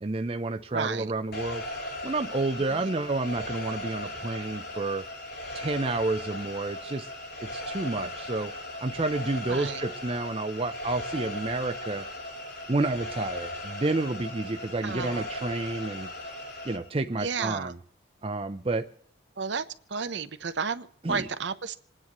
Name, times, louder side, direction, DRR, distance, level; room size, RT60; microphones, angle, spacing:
voice 1, 0.0-1.6 2.0-5.0 5.5-7.1 7.4-8.5 8.8-12.0 12.7-16.1 16.6-17.8 18.2-18.9 21.0-21.3, right 2 dB, 30° right, 7 dB, 0.5 m, -30 dB
voice 2, 0.7-1.1 2.7-2.9 8.0-8.1 9.5-9.8 14.8-15.2 17.2-17.7 19.4-19.6 19.9-21.7, right 5 dB, 70° right, 11 dB, 0.8 m, -32 dB
sound 1, 1.3-16.8, left 1 dB, 55° left, 7.0 m, -38 dB
28.0 x 9.7 x 3.0 m, 0.63 s
head